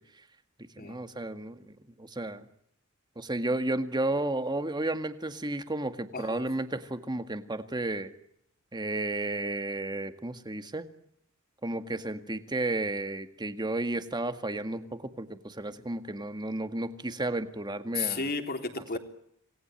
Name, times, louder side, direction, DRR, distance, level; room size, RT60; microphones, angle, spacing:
voice 1, 0.8-2.5 3.2-8.1 8.7-10.9 11.6-18.2, right 2 dB, 20° right, 9 dB, 1.9 m, -32 dB
voice 2, 6.1-6.4 17.9-19.0, left 4 dB, 45° left, 6 dB, 3.4 m, -33 dB
27.5 x 19.5 x 9.1 m, 0.72 s
head